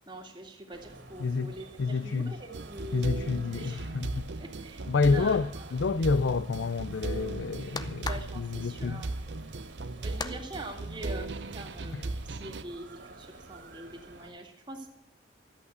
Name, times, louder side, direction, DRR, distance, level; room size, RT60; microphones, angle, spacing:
voice 1, 0.1-3.8 4.4-5.6 8.1-9.1 10.0-14.9, right 2 dB, 25° right, 2.2 m, -44 dB
sound 1, 0.7-14.3, right 2 dB, 85° right, 2.3 m, -51 dB
voice 2, 1.2-1.5 1.8-2.3 2.9-4.3 4.9-8.1 8.3-9.0 11.9-12.0, left 4 dB, 80° left, 0.5 m, -28 dB
sound 2, 2.5-12.6, right 2 dB, 70° right, 0.7 m, -37 dB
sound 3, 5.2-10.4, left 4 dB, 20° left, 0.5 m, -43 dB
13.0 x 8.5 x 8.0 m
head